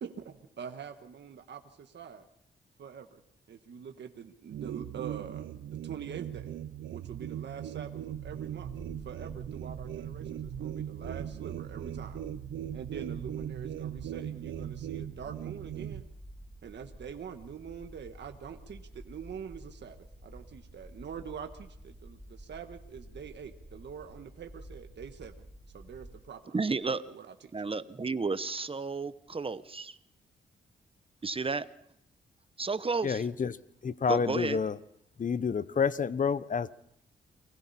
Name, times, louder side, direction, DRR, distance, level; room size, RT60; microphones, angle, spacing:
voice 1, 0.0-2.3 2.8-3.2 3.5-5.4 5.7-6.6 6.9-8.7 9.0-12.2 12.7-16.1 16.6-20.0 20.2-25.5 25.7-26.6 27.0-27.5, right 7 dB, 65° right, 1.5 m, -44 dB
sound 1, 4.5-16.0, right 11 dB, 85° right, 0.7 m, -39 dB
sound 2, 14.8-26.1, equal, 10° right, 6.4 m, -50 dB
voice 2, 26.5-27.0 27.5-30.0 31.2-31.7 32.6-33.3 34.1-34.6, right 4 dB, 30° right, 1.0 m, -32 dB
voice 3, 33.0-33.6 33.8-34.7 35.2-36.7, left 6 dB, 45° left, 0.8 m, -29 dB
29.5 x 20.5 x 4.3 m
cardioid pair, 75°, 19 cm